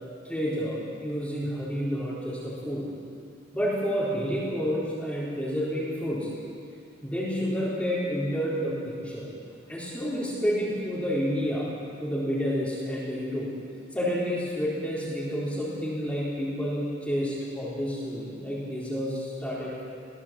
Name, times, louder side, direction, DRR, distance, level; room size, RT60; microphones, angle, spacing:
voice 1, 0.2-2.9 3.5-6.3 7.0-9.3 9.7-11.7 12.0-13.5 13.9-19.9, equal, 5° left, -8 dB, 4.0 m, -29 dB
21.5 x 16.0 x 7.7 m, 2.5 s
head